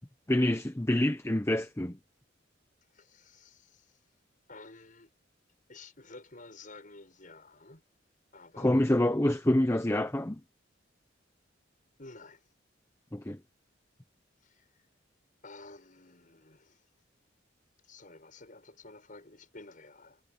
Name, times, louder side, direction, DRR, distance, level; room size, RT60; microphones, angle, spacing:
voice 1, 0.3-2.0 8.6-10.4 13.1-13.4, left 1 dB, 15° left, 0.8 m, -26 dB
voice 2, 2.9-4.0 4.5-5.1 5.7-7.8 8.3-8.9 12.0-12.5 14.4-14.7 15.4-16.9 17.8-20.2, left 3 dB, 45° left, 7.3 m, -52 dB
head